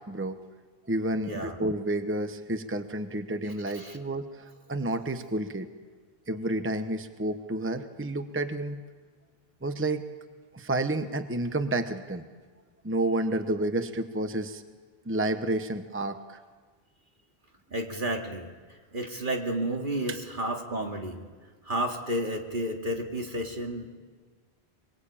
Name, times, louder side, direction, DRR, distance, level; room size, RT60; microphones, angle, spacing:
voice 1, 0.1-0.4 0.9-5.7 6.3-8.8 9.6-10.0 10.5-12.2 12.8-14.6 15.1-16.4 20.1-20.2, right 1 dB, 10° right, 8 dB, 1.0 m, -30 dB
voice 2, 1.2-1.6 3.7-4.0 17.7-18.5 18.9-21.2 21.6-23.9, right 1 dB, 50° right, 1 dB, 2.7 m, -31 dB
23.5 x 23.0 x 8.8 m, 1.5 s
omnidirectional pair, 1.1 m